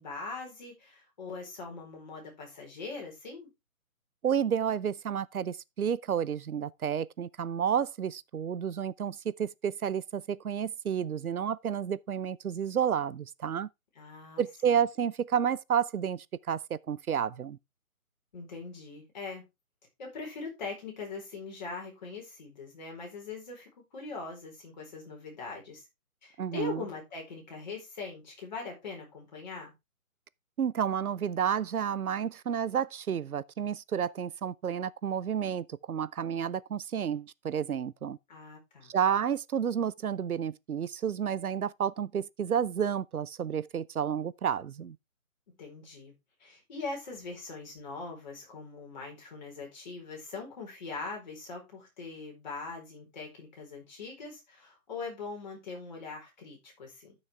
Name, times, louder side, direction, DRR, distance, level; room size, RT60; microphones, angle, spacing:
voice 1, 0.0-3.5 14.0-14.7 18.3-19.5 20.0-25.8 26.2-29.7 38.3-38.9 45.6-46.1 46.4-57.1, left 4 dB, 30° left, 4.4 m, -41 dB
voice 2, 4.2-13.7 14.4-17.6 26.4-26.8 30.6-38.2 38.9-45.0, right 8 dB, 90° right, 0.7 m, -31 dB
13.5 x 6.4 x 3.4 m
hypercardioid pair, 170°, 42 cm